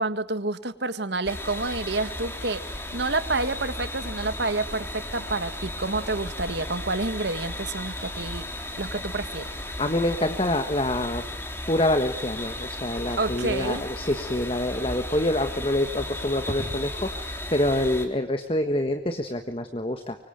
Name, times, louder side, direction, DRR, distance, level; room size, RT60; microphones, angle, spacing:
voice 1, 0.0-8.5 8.8-9.5 13.2-13.8, right 3 dB, 65° right, 12 dB, 1.8 m, -29 dB
sound 1, 1.2-18.1, left 1 dB, 15° left, 3.4 m, -35 dB
voice 2, 9.6-11.2 11.7-20.2, left 1 dB, 30° left, 7 dB, 1.5 m, -26 dB
sound 2, 13.0-13.9 14.2-15.0 15.4-15.8 16.5-16.9, equal, 20° right, 4.4 m, -39 dB
25.0 x 24.5 x 9.2 m, 0.74 s
head